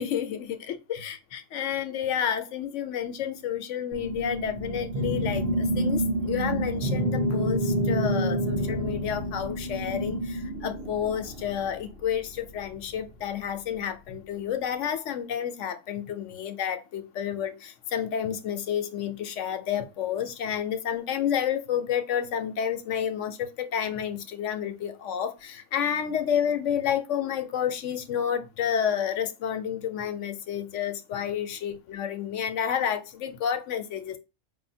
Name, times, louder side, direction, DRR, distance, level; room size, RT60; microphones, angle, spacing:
voice 1, 0.0-34.2, left 9 dB, 75° left, 1.0 m, -30 dB
sound 1, 3.9-11.7, right 1 dB, 50° right, 1.0 m, -28 dB
5.0 x 2.7 x 2.6 m
omnidirectional pair, 1.3 m